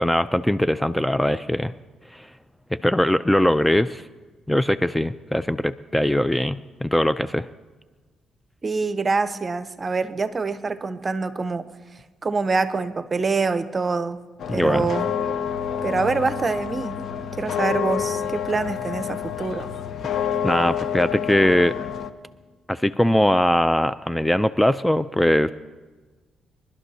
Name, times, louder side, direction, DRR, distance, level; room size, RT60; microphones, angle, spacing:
voice 1, 0.0-1.7 2.1-2.3 2.7-4.0 4.5-7.5 14.5-14.9 20.4-21.8 22.7-25.5, left 1 dB, 5° left, 14 dB, 0.4 m, -21 dB
voice 2, 8.6-11.7 12.2-14.2 14.5-15.1 15.8-19.7, right 4 dB, 35° right, 12 dB, 0.8 m, -25 dB
sound 1, 14.4-22.1, left 8 dB, 65° left, 0.8 m, -28 dB
23.5 x 12.0 x 2.8 m, 1.3 s
cardioid pair, 70°, 0 cm